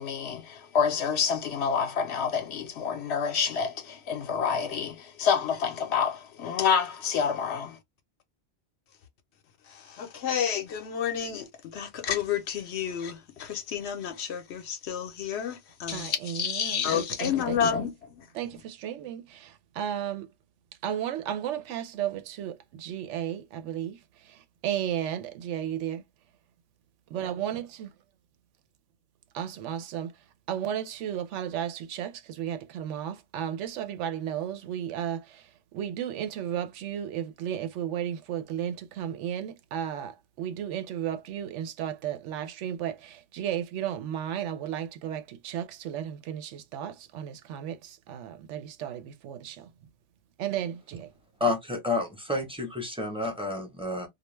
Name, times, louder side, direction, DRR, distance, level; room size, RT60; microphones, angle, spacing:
voice 1, 0.0-7.8 9.7-18.3, left 7 dB, 70° left, 0.9 m, -29 dB
voice 2, 15.9-17.9 18.3-20.3 20.8-26.0 27.1-27.9 29.3-49.7 50.4-51.1, right 10 dB, 85° right, 0.9 m, -34 dB
voice 3, 51.4-54.1, left 2 dB, 5° right, 0.6 m, -30 dB
2.3 x 2.2 x 3.0 m
omnidirectional pair, 1.2 m